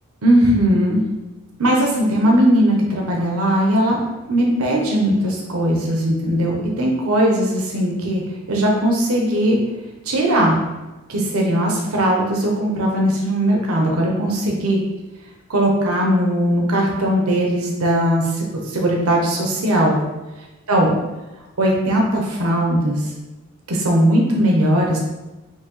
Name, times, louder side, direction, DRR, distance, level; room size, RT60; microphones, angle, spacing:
voice 1, 0.2-1.0 1.6-4.0 4.3-8.2 8.5-9.6 10.1-10.6 11.1-14.8 15.5-20.0 20.7-20.9 21.6-23.0 23.7-25.0, right 1 dB, 85° right, -1 dB, 0.8 m, -18 dB
5.7 x 2.7 x 3.0 m, 1.1 s
head